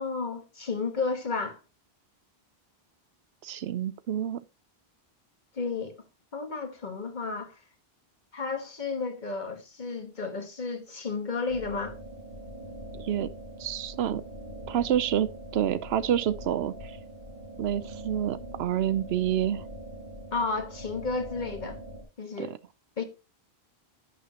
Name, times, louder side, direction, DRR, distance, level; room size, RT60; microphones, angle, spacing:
voice 1, 0.0-1.6 5.5-6.0 6.3-7.6 8.3-12.0 20.3-21.8 22.2-22.5 23.0-23.1, left 4 dB, 50° left, 1.4 m, -32 dB
voice 2, 3.4-4.4 13.0-13.3 13.6-14.2 14.7-17.0 17.6-19.6 22.4-22.6, right 10 dB, 85° right, 0.8 m, -28 dB
sound 1, 11.5-22.0, right 1 dB, 55° right, 2.0 m, -42 dB
11.0 x 7.1 x 2.9 m
omnidirectional pair, 1.0 m